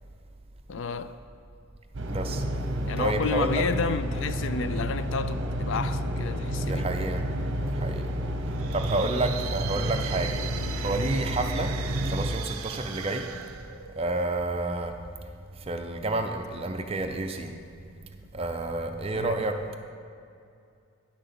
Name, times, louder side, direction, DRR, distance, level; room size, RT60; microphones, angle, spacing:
voice 1, 0.7-1.1 2.9-6.9 19.1-19.4, left 5 dB, 60° left, 0.4 m, -31 dB
sound 1, 1.9-12.3, equal, 55° right, 0.9 m, -30 dB
voice 2, 2.1-2.4 3.0-3.6 6.5-7.3 7.6-8.1 8.7-10.4 10.8-11.7 12.0-13.3 13.9-14.9 15.6-17.5 18.3-19.8, right 2 dB, 25° right, 0.6 m, -30 dB
sound 2, 8.4-14.4, right 9 dB, 75° right, 0.6 m, -39 dB
9.9 x 6.0 x 6.7 m
head